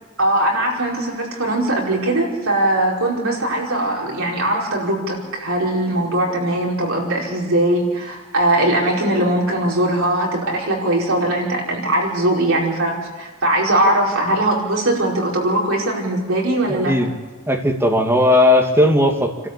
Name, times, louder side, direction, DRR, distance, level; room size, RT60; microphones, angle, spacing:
voice 1, 0.2-16.9, right 1 dB, 70° right, -2 dB, 5.1 m, -20 dB
voice 2, 16.7-17.1 17.5-19.5, left 1 dB, 10° right, 2 dB, 2.2 m, -16 dB
28.5 x 13.0 x 8.4 m, 1.4 s
head